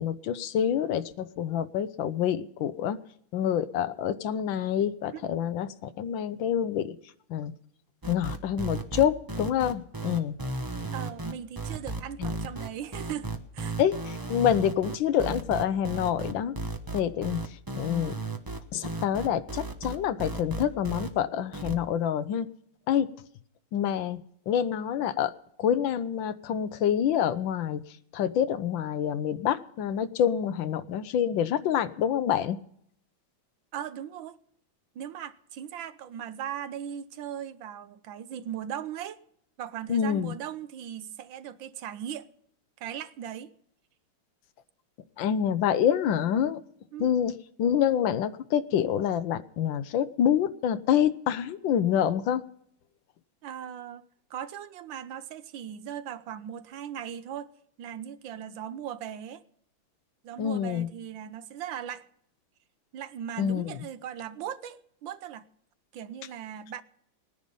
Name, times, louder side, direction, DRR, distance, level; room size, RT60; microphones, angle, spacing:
voice 1, 0.0-3.0 3.3-7.0 7.3-7.5 8.1-10.3 12.2-12.3 13.8-16.5 16.9-17.4 17.7-18.1 18.7-22.5 22.9-23.1 23.7-24.2 24.5-25.3 25.6-27.8 28.1-32.6 39.9-40.3 45.2-46.6 47.0-47.3 47.6-52.4 60.4-60.9 63.4-63.8, left 9 dB, 75° left, 1.4 m, -27 dB
sound 1, 8.0-21.1 21.5-21.8, right 2 dB, 20° right, 0.5 m, -34 dB
voice 2, 10.9-13.8 33.7-34.4 34.9-39.2 39.6-42.3 42.8-43.5 46.9-47.1 53.4-54.0 54.3-57.5 57.8-59.4 60.2-62.1 62.9-65.5 65.9-66.8, right 9 dB, 75° right, 1.5 m, -38 dB
19.0 x 10.5 x 5.4 m
omnidirectional pair, 2.2 m